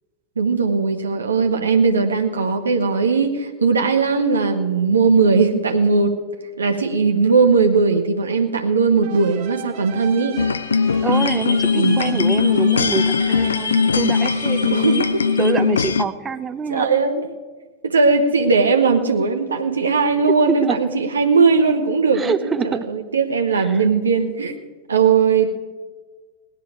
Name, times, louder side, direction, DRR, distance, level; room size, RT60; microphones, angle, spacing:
voice 1, 0.4-6.2 6.6-10.4 11.7-12.3 14.7-15.2 16.7-17.2 17.8-24.5 24.9-25.5, right 4 dB, 75° right, 5 dB, 0.9 m, -18 dB
sound 1, 9.0-16.4, right 11 dB, 45° right, 1.2 m, -40 dB
sound 2, 10.4-16.0, left 5 dB, 70° left, 0.5 m, -19 dB
voice 2, 11.0-15.0 15.4-16.9 20.3-20.8 22.1-22.9 23.6-23.8, right 5 dB, 20° right, 11 dB, 0.8 m, -25 dB
18.0 x 11.0 x 4.9 m, 1.4 s
figure-of-eight pair, 90°, 0 cm